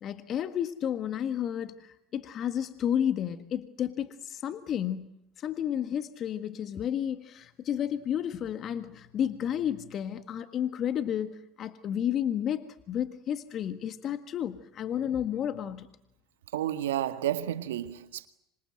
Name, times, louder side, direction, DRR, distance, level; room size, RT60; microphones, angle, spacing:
voice 1, 0.0-5.1 5.4-15.9, left 9 dB, 50° left, 1.7 m, -31 dB
voice 2, 16.5-18.3, right 12 dB, 85° right, 1.7 m, -31 dB
26.5 x 26.5 x 7.8 m
hypercardioid pair, 80°, 0 cm